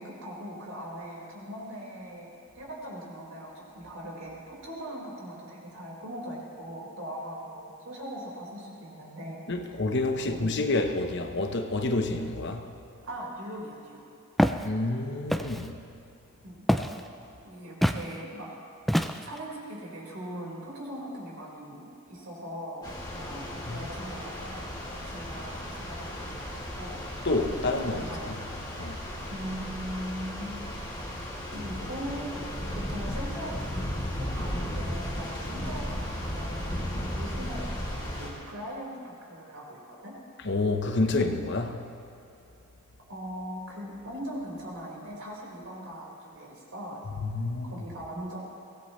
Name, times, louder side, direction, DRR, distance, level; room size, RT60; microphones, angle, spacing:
voice 1, 0.0-9.4 9.6-9.7 10.2-10.4 13.0-14.0 16.4-16.6 17.4-18.5 19.2-27.3 27.8-28.3 29.3-30.6 31.5-32.4 32.7-40.1 41.1-41.3 43.1-47.1 47.6-48.4, equal, 75° right, 4.7 m, -40 dB
voice 2, 9.5-12.7 14.6-15.8 23.7-23.9 27.2-28.0 28.8-29.0 40.4-41.8 47.2-47.7, left 2 dB, 55° left, 1.0 m, -28 dB
Walk footsteps, 14.4-14.7 15.3-15.7 16.7-17.0 17.8-18.1 18.9-19.4, equal, ahead, 0.4 m, -25 dB
sound 1, 22.8-38.3, equal, 20° left, 2.5 m, -35 dB
23.5 x 18.0 x 3.2 m
head